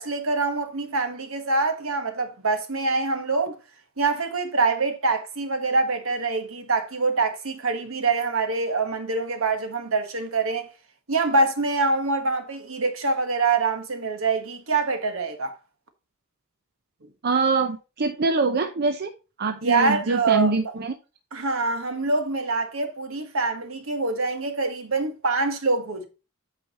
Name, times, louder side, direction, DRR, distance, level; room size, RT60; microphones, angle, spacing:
voice 1, 0.0-3.6 4.0-10.7 11.1-15.5 19.6-20.5 21.3-26.0, right 3 dB, 70° right, 1.5 m, -25 dB
voice 2, 17.2-19.1 19.4-20.9, right 3 dB, 50° right, 0.6 m, -24 dB
8.7 x 5.1 x 4.1 m
head